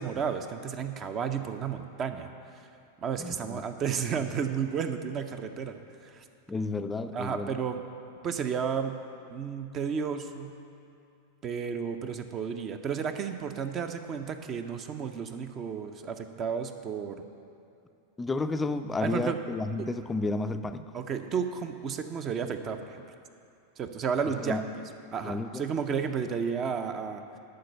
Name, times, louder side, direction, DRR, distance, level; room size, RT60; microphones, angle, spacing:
voice 1, 0.0-2.3 3.0-6.2 7.1-7.8 8.2-8.9 9.3-10.6 11.4-17.3 19.0-19.4 20.9-23.0 23.8-24.8 25.1-27.4, right 6 dB, 30° right, 8 dB, 0.6 m, -32 dB
voice 2, 3.2-3.6 6.5-7.6 18.2-20.9 24.4-24.6 25.2-25.6, left 3 dB, 15° left, 9 dB, 0.4 m, -32 dB
11.5 x 4.5 x 6.8 m, 2.6 s
figure-of-eight pair, 90°, 0 cm